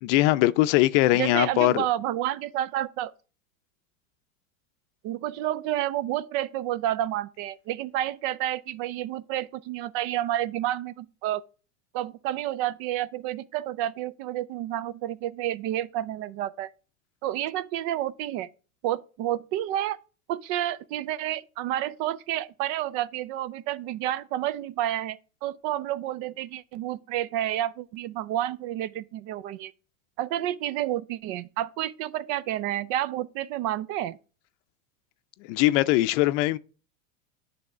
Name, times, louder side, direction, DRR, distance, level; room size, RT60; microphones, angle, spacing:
voice 1, 0.0-1.9 35.5-36.6, left 17 dB, 60° left, 0.5 m, -21 dB
voice 2, 1.1-3.1 5.0-11.4 11.9-16.7 17.2-18.5 18.8-20.0 20.3-29.7 30.2-34.2, right 13 dB, 50° right, 0.4 m, -30 dB
9.4 x 3.5 x 4.8 m
hypercardioid pair, 105°, 41 cm